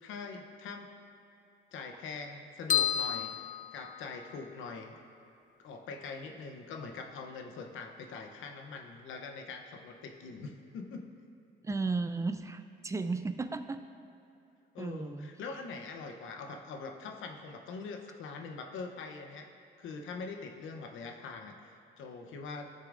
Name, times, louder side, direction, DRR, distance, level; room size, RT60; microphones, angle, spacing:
voice 1, 0.0-0.9 1.7-4.9 5.6-11.1 14.7-19.5 19.8-22.6, left 4 dB, 80° left, 4 dB, 0.8 m, -43 dB
sound 1, 2.7-4.5, left 10 dB, 40° left, 0.4 m, -31 dB
voice 2, 11.6-13.8 14.8-15.3, right 3 dB, 15° right, 9 dB, 0.5 m, -34 dB
15.0 x 6.7 x 2.6 m, 2.7 s
cardioid pair, 90°, 20 cm